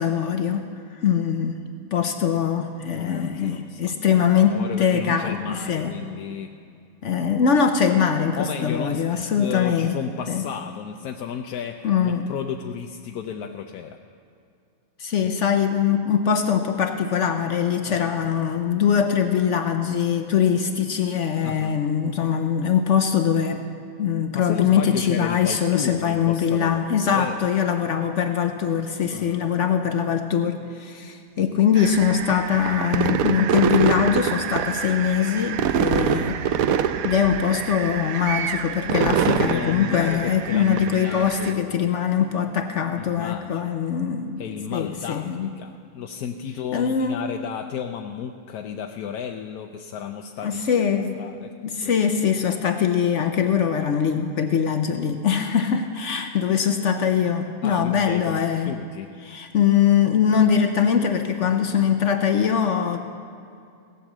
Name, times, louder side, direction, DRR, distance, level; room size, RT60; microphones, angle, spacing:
voice 1, 0.0-1.6 1.9-5.9 7.0-9.9 10.3-10.5 11.8-12.3 15.0-23.6 24.0-36.4 37.0-44.4 44.7-45.5 46.7-47.2 50.4-51.2 51.6-58.7 59.2-63.0, left 7 dB, 60° left, 6 dB, 1.0 m, -22 dB
voice 2, 2.9-3.9 4.4-6.6 8.4-14.0 17.9-18.3 21.4-21.8 24.3-27.4 29.1-29.4 38.9-41.9 43.0-43.7 44.4-50.8 51.2-51.5 51.8-52.0 57.6-59.1, left 8 dB, 85° left, 4 dB, 1.1 m, -33 dB
sound 1, 31.8-41.5, right 8 dB, 75° right, 1.0 m, -25 dB
17.0 x 8.2 x 7.3 m, 2.4 s
omnidirectional pair, 1.6 m